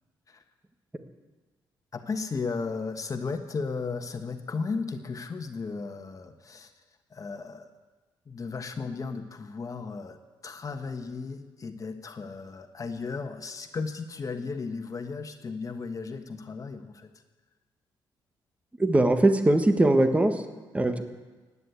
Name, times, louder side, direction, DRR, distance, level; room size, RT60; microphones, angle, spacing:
voice 1, 1.9-6.7 7.1-7.7 8.3-10.2 10.4-17.1, left 4 dB, 40° left, 6 dB, 1.4 m, -35 dB
voice 2, 18.8-20.4 20.7-21.0, right 1 dB, 15° right, 7 dB, 1.5 m, -21 dB
16.0 x 9.8 x 8.5 m, 1.3 s
cardioid pair, 80°, 9 cm